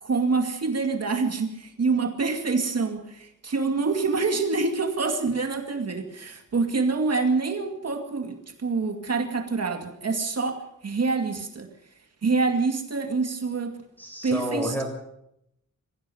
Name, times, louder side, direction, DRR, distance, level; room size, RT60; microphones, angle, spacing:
voice 1, 0.0-11.7 12.2-13.8 14.2-14.8, right 4 dB, 50° right, 4 dB, 2.3 m, -26 dB
voice 2, 14.0-14.8, equal, 5° left, 2 dB, 5.6 m, -30 dB
22.5 x 16.0 x 7.1 m, 0.78 s
wide cardioid pair, 170°, 32 cm